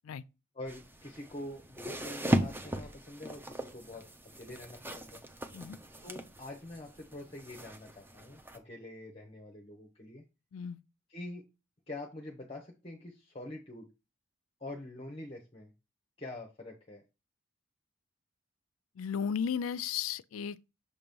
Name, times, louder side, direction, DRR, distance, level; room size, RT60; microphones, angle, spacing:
voice 1, 0.5-4.1 4.3-5.2 6.0-10.2 11.1-11.4 11.9-13.9 14.6-15.7 16.2-17.0, left 1 dB, 25° left, 0.8 m, -45 dB
sound 1, 0.7-8.6, right 1 dB, 10° right, 0.6 m, -37 dB
voice 2, 19.0-20.7, left 7 dB, 85° left, 0.4 m, -35 dB
6.9 x 3.0 x 5.2 m
head